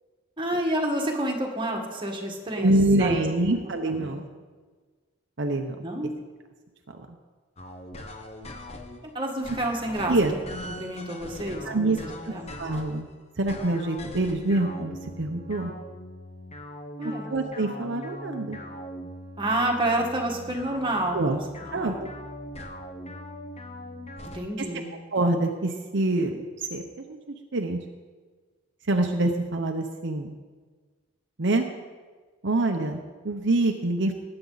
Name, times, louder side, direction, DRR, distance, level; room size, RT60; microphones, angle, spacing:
voice 1, 0.4-2.7 3.0-3.6 3.8-4.2 5.8-6.1 9.1-12.4 17.0-17.3 19.4-21.4 21.8-22.0 24.3-24.9, right 1 dB, 25° right, 0 dB, 1.7 m, -29 dB
voice 2, 2.6-4.2 5.4-5.8 7.0-7.1 10.1-10.3 11.6-12.0 12.2-12.3 12.6-13.1 13.4-15.7 17.2-18.6 21.1-21.4 21.7-22.1 25.1-27.8 28.9-30.3 31.4-31.7 32.4-34.1, right 2 dB, 60° right, 3 dB, 0.9 m, -25 dB
sound 1, 7.6-9.0 9.4-13.0 13.5-24.4, left 1 dB, 30° left, 1.0 m, -40 dB
19.5 x 8.8 x 4.0 m, 1.4 s
head